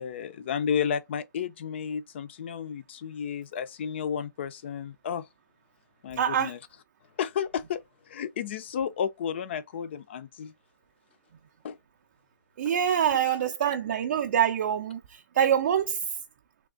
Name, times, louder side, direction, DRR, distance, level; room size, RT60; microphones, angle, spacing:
voice 1, 0.0-5.3 6.0-6.6 7.2-10.5 11.6-11.8, left 7 dB, 35° left, 0.5 m, -32 dB
voice 2, 6.2-6.5 12.6-16.0, right 9 dB, 35° right, 0.5 m, -25 dB
3.4 x 3.2 x 3.7 m
hypercardioid pair, 165°, 11 cm